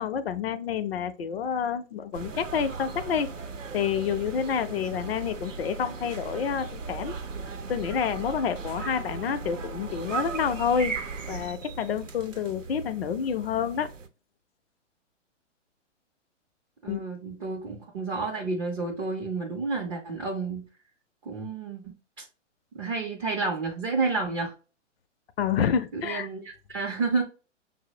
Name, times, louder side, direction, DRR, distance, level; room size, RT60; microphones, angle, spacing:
voice 1, 0.0-3.3 3.7-7.2 7.7-10.9 11.3-13.9 16.9-17.0 25.4-26.3, left 7 dB, 55° left, 0.5 m, -28 dB
sound 1, 2.1-14.1, right 5 dB, 85° right, 0.6 m, -37 dB
voice 2, 16.8-20.6 21.2-22.3 22.8-24.5 25.9-27.2, right 3 dB, 20° right, 0.5 m, -30 dB
5.8 x 2.0 x 2.7 m
figure-of-eight pair, 120°, 37 cm